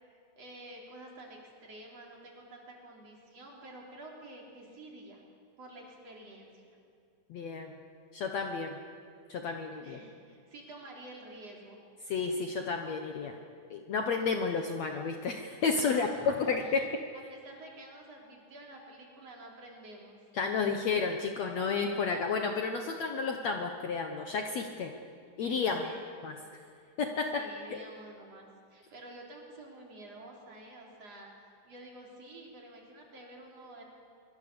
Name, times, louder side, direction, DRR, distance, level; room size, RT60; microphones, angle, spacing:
voice 1, 0.4-5.2 5.6-6.6 9.8-11.8 15.8-16.9 17.3-20.2 25.8-26.1 27.3-31.3 31.6-33.8, right 1 dB, 45° right, -1 dB, 4.5 m, -49 dB
voice 2, 7.3-7.7 8.1-8.8 9.3-10.0 12.1-13.4 13.7-16.9 20.3-24.9 25.4-25.9 26.2-26.3 27.0-27.4 27.7-27.8, left 5 dB, 60° left, 4 dB, 2.0 m, -31 dB
24.5 x 23.5 x 7.0 m, 2.3 s
omnidirectional pair, 4.1 m